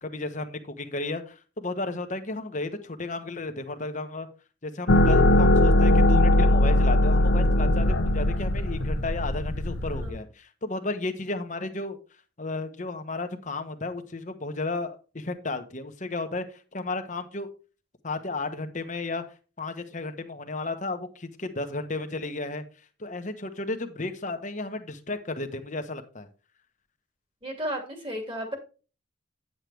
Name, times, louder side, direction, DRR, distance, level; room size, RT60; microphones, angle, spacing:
voice 1, 0.0-4.3 4.6-12.0 12.4-17.5 18.0-19.2 19.6-22.6 23.0-26.3, left 2 dB, 35° left, 8 dB, 1.1 m, -33 dB
sound 1, 4.9-10.1, left 1 dB, 70° left, 0.9 m, -20 dB
voice 2, 27.4-28.6, equal, 25° right, 3 dB, 2.5 m, -34 dB
9.7 x 7.8 x 3.4 m, 0.35 s
head